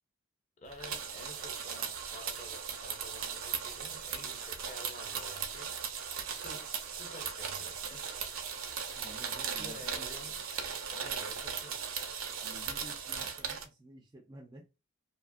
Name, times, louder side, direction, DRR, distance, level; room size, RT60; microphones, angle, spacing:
voice 1, 0.6-5.7 6.3-6.7 7.0-8.1 9.6-10.4 10.9-11.8, left 1 dB, 35° left, 0.6 m, -50 dB
sound 1, 0.7-13.6, right 7 dB, 80° right, 0.6 m, -38 dB
voice 2, 9.0-10.1 12.4-14.7, right 1 dB, 20° right, 0.3 m, -52 dB
2.8 x 2.3 x 2.4 m
head